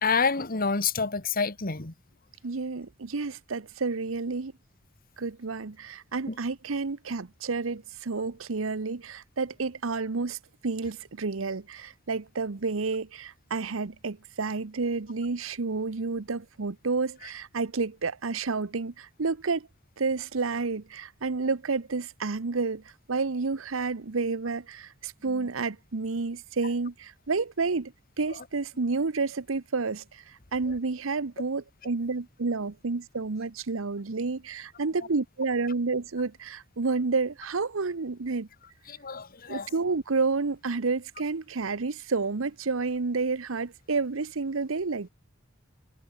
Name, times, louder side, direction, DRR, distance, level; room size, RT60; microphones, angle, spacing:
voice 1, 0.0-1.9 6.3-6.4 25.3-25.5 38.9-39.7, left 5 dB, 45° left, 2.1 m, -28 dB
voice 2, 2.4-4.5 5.2-10.4 10.6-19.7 20.0-22.8 23.1-27.9 28.2-30.2 30.5-38.5 39.5-45.1, right 4 dB, 85° right, 0.9 m, -30 dB
head